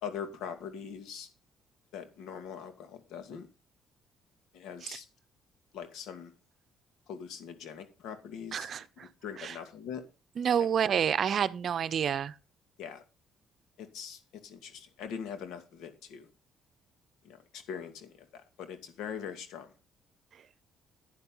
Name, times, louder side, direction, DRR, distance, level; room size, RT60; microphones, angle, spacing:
voice 1, 0.0-1.3 1.9-3.5 4.5-5.1 5.7-6.3 7.1-8.7 9.0-10.0 10.6-10.7 12.8-13.0 13.8-16.3 17.2-19.7, left 7 dB, 80° left, 2.4 m, -42 dB
voice 2, 8.5-9.1 9.4-9.6 10.4-12.3, right 8 dB, 55° right, 0.7 m, -29 dB
10.5 x 9.9 x 3.9 m
cardioid pair, 80°, 0 cm